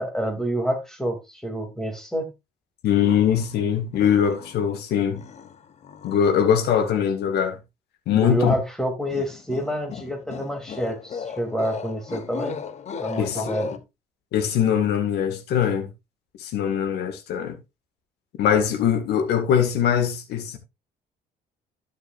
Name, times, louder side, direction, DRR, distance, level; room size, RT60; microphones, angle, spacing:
voice 1, 0.0-2.3 8.1-12.6 12.9-13.7, equal, 5° left, 2.9 m, -28 dB
voice 2, 2.8-5.2 6.0-7.6 8.1-8.5 13.2-13.5 14.3-15.9 16.4-17.6 18.4-20.6, left 8 dB, 75° left, 1.9 m, -22 dB
sound 1, 3.0-3.6 3.9-4.7 5.1-6.3 9.1-13.8, left 7 dB, 40° left, 0.9 m, -37 dB
12.0 x 6.5 x 2.6 m
cardioid pair, 110°, 17 cm